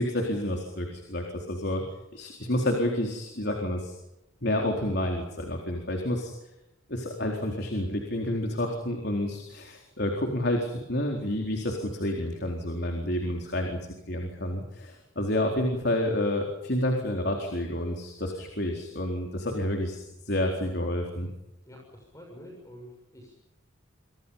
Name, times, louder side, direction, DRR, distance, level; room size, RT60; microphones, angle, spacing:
voice 1, 0.0-1.8 2.1-3.9 4.4-6.3 6.9-13.8 14.1-21.3, left 1 dB, 55° left, 2 dB, 4.2 m, -29 dB
voice 2, 21.7-23.3, equal, 15° left, 0 dB, 6.7 m, -47 dB
29.5 x 25.5 x 5.6 m, 0.93 s
head